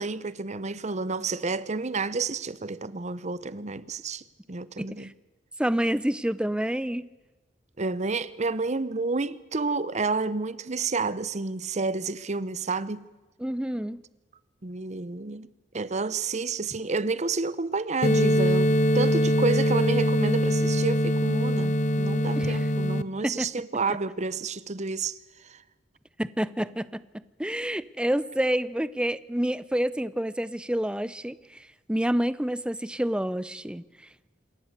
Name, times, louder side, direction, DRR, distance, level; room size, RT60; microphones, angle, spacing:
voice 1, 0.0-4.2 4.5-5.1 7.8-13.1 14.6-15.5 15.7-25.2 25.5-25.6, right 3 dB, 40° right, 0.8 m, -30 dB
voice 2, 4.8-5.1 5.6-7.1 13.4-14.0 22.3-22.7 23.2-23.5 26.2-33.8, equal, 5° right, 0.6 m, -28 dB
sound 1, 18.0-23.0, equal, 40° left, 0.8 m, -23 dB
27.0 x 13.5 x 8.2 m
head